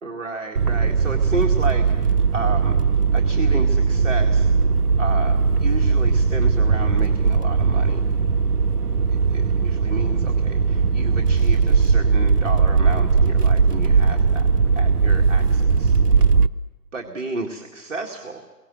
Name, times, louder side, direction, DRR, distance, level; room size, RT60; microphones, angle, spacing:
voice 1, 0.0-2.8 3.1-4.5 5.0-8.1 9.6-14.5 14.7-16.3 16.9-18.4, right 2 dB, 45° right, 2 dB, 2.1 m, -32 dB
sound 1, 0.6-16.5, right 5 dB, 70° right, 0.8 m, -19 dB
28.5 x 23.5 x 7.6 m, 1.3 s
figure-of-eight pair, 155°, 49 cm